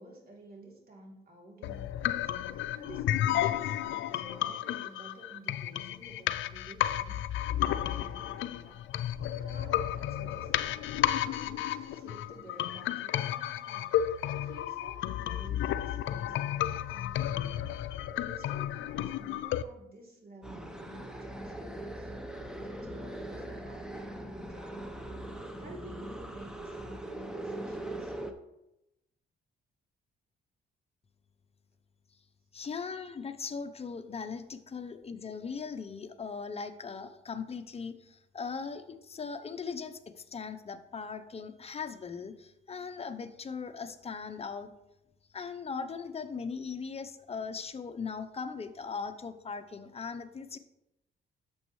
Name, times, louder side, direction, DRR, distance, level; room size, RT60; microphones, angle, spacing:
voice 1, 0.0-7.2 7.6-8.8 9.2-17.6 18.0-22.3 22.6-25.0 25.6-28.1, right 1 dB, 50° right, -2 dB, 3.0 m, -52 dB
sound 1, 1.6-19.6, left 12 dB, 75° left, 0.4 m, -32 dB
sound 2, 20.4-28.3, right 1 dB, 5° right, 0.9 m, -41 dB
voice 2, 32.5-44.7 45.3-50.6, left 5 dB, 30° left, 8 dB, 0.7 m, -39 dB
11.0 x 7.0 x 3.2 m, 0.91 s
cardioid pair, 90°, 20 cm